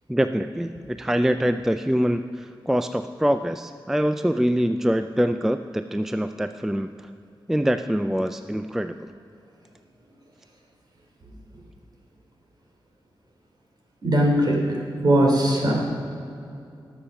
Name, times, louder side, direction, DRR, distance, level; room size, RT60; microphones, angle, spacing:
voice 1, 0.1-7.1 7.5-9.0, equal, 5° right, 9 dB, 0.3 m, -24 dB
voice 2, 14.0-14.6 15.0-15.7, right 1 dB, 55° right, -1 dB, 3.3 m, -19 dB
18.5 x 7.2 x 5.7 m, 2.6 s
wide cardioid pair, 110°, 9 cm